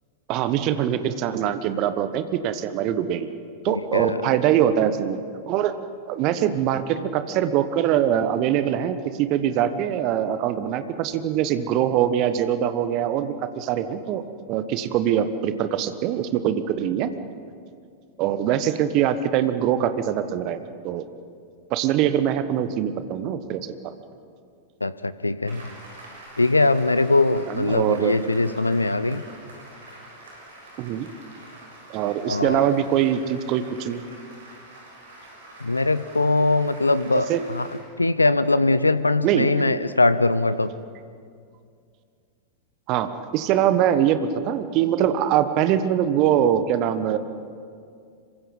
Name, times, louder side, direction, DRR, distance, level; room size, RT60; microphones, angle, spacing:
voice 1, 0.3-3.3 3.6-5.2 5.5-5.7 6.1-14.2 14.5-17.1 18.2-20.6 20.8-21.0 21.7-23.7 27.5-28.2 30.8-31.1 31.9-34.0 37.3-37.4 39.2-39.5 42.9-47.2, right 10 dB, 40° right, 11 dB, 1.3 m, -23 dB
voice 2, 3.7-4.2 24.8-25.6 26.4-29.2 32.3-32.6 35.6-37.7 38.0-40.7, left 2 dB, 80° left, 15 dB, 0.6 m, -21 dB
Applause, 25.4-37.8, right 2 dB, 65° right, 7.4 m, -45 dB
26.0 x 23.5 x 5.5 m, 2.3 s
figure-of-eight pair, 90°, 0 cm